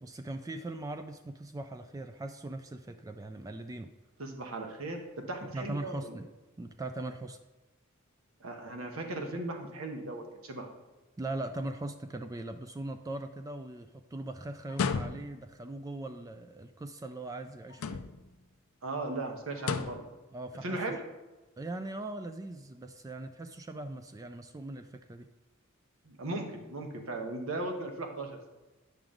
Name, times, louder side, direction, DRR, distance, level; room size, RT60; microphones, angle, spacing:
voice 1, 0.0-3.9 5.4-6.3 6.6-7.4 11.2-18.0 20.3-20.8 21.6-25.3, right 2 dB, 15° right, 7 dB, 0.3 m, -40 dB
voice 2, 4.2-5.0 5.3-6.2 8.4-10.7 18.8-20.0 20.6-21.0 26.0-28.5, right 2 dB, 90° right, 3 dB, 1.2 m, -37 dB
sound 1, 14.7-15.5 17.7-18.4 19.6-20.1, left 5 dB, 80° left, 0.5 m, -33 dB
9.2 x 5.9 x 3.8 m, 1.1 s
head